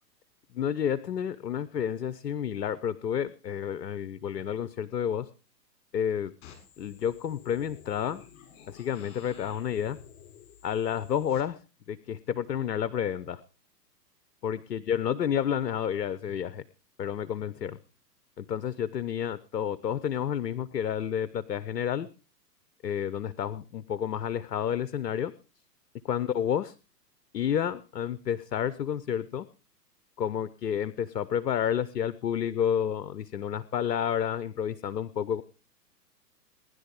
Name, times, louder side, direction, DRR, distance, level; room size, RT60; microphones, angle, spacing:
voice 1, 0.5-5.3 5.9-6.3 6.8-8.2 8.7-10.0 10.6-11.6 11.9-13.4 14.4-16.6 17.0-17.8 18.4-22.1 22.8-25.3 26.1-26.7 27.3-29.5 30.2-35.4, left 9 dB, 70° left, 16 dB, 1.0 m, -30 dB
sound 1, 6.4-11.4, left 8 dB, 40° left, 7.3 m, -52 dB
19.5 x 11.0 x 5.1 m, 0.35 s
figure-of-eight pair, 115°, 49 cm